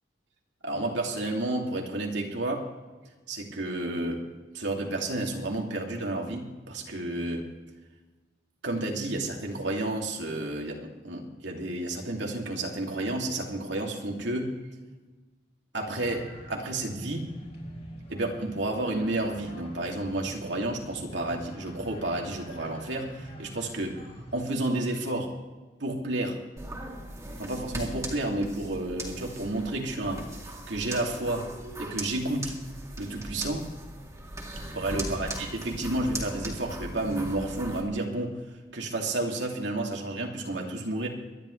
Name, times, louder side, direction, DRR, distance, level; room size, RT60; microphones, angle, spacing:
voice 1, 0.6-2.7 3.3-4.3 4.5-7.5 8.6-14.5 15.7-17.3 18.1-24.0 24.3-25.3 25.8-26.4 27.4-30.3 30.7-31.5 31.8-32.5 33.0-33.7 34.7-38.4 38.7-41.1, right 2 dB, 80° right, 0 dB, 2.5 m, -31 dB
sound 1, 15.9-24.5, equal, 40° left, 5.7 m, -46 dB
sound 2, 26.6-37.8, right 1 dB, 15° right, 2.3 m, -39 dB
24.5 x 11.0 x 3.2 m, 1.2 s
head